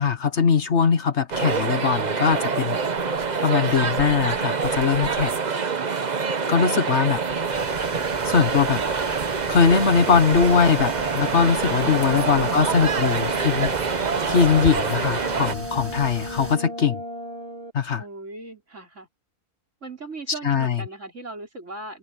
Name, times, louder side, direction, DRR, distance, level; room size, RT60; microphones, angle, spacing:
voice 1, 0.0-2.8 3.4-5.4 6.5-7.2 8.2-8.8 9.5-14.0 14.3-17.0 17.7-18.0 20.4-20.7, left 6 dB, 65° left, 1.4 m, -21 dB
sound 1, 1.3-15.5, right 5 dB, 40° right, 1.0 m, -26 dB
sound 2, 7.5-16.5, right 1 dB, 10° right, 1.6 m, -38 dB
sound 3, 9.7-17.7, equal, 30° left, 6.9 m, -36 dB
voice 2, 12.2-12.9 17.9-19.1 19.8-22.0, right 2 dB, 70° right, 5.3 m, -38 dB
omnidirectional pair, 1.3 m